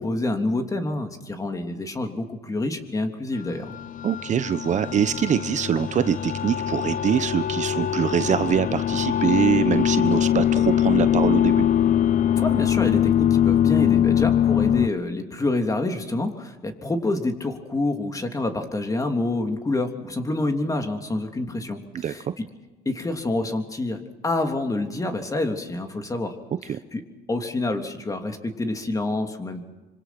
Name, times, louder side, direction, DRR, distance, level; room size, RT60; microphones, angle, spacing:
voice 1, 0.0-3.8 12.3-22.4 22.8-26.3 26.6-27.0 27.3-29.6, left 2 dB, 20° left, 5 dB, 3.2 m, -27 dB
sound 1, 3.5-14.9, left 10 dB, 50° left, 0.7 m, -22 dB
voice 2, 4.0-11.7 21.9-22.3 26.7-26.8, right 8 dB, 45° right, 12 dB, 1.0 m, -24 dB
26.0 x 25.5 x 6.1 m, 1.2 s
cardioid pair, 110°, 17 cm